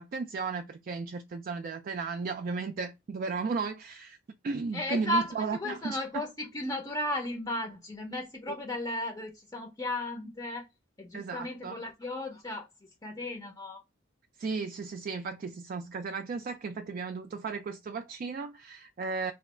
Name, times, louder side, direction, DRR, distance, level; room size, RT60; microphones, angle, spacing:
voice 1, 0.0-4.2 4.4-6.0 11.1-11.8 14.4-19.3, right 4 dB, 45° right, 0.3 m, -35 dB
voice 2, 4.7-10.7 11.0-12.7 13.0-13.8, left 1 dB, 20° left, 0.6 m, -35 dB
2.9 x 2.4 x 4.2 m
head